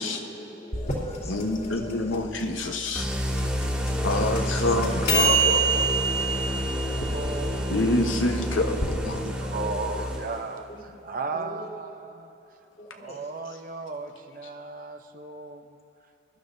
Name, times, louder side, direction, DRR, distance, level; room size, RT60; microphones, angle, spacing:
voice 1, 0.0-2.2 3.1-5.1 6.0-7.6 8.9-10.2 10.7-11.0 11.3-11.7 12.8-13.3, equal, 35° left, 2 dB, 1.3 m, -43 dB
sound 1, 0.7-8.9, right 4 dB, 55° left, 2.8 m, -28 dB
voice 2, 1.3-3.1 4.0-5.9 7.7-9.2, left 2 dB, 80° left, 4 dB, 1.1 m, -27 dB
sound 2, 2.9-10.6, equal, 5° right, 1.7 m, -29 dB
voice 3, 7.1-8.2 8.6-10.7 11.0-12.3 12.9-15.8, right 3 dB, 45° right, 6 dB, 0.7 m, -36 dB
23.0 x 12.0 x 2.7 m, 2.9 s
head